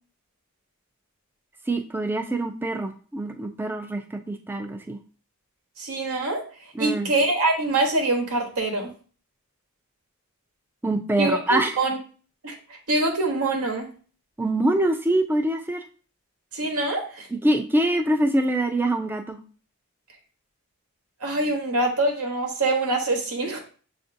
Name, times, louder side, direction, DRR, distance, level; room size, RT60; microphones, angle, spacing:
voice 1, 1.7-5.0 6.7-7.1 10.8-11.8 14.4-15.8 17.3-19.4, right 1 dB, 10° right, 5 dB, 0.3 m, -24 dB
voice 2, 5.8-6.4 6.8-8.9 11.2-11.4 11.8-12.0 12.4-12.5 12.9-13.9 16.5-17.3 21.2-23.6, right 2 dB, 75° right, 1 dB, 0.9 m, -24 dB
6.7 x 2.5 x 2.6 m, 0.40 s
head